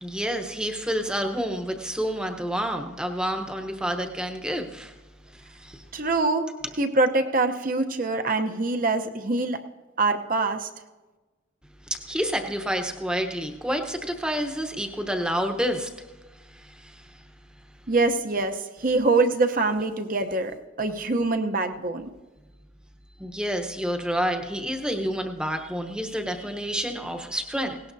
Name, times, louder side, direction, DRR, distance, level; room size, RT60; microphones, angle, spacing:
voice 1, 0.0-4.9 5.3-5.8 11.9-16.1 16.3-17.2 23.2-27.8, equal, 5° right, 5 dB, 0.9 m, -29 dB
voice 2, 5.9-9.6 10.0-10.7 17.9-22.1, right 3 dB, 45° right, 6 dB, 0.8 m, -24 dB
18.0 x 18.0 x 2.7 m, 1.2 s
head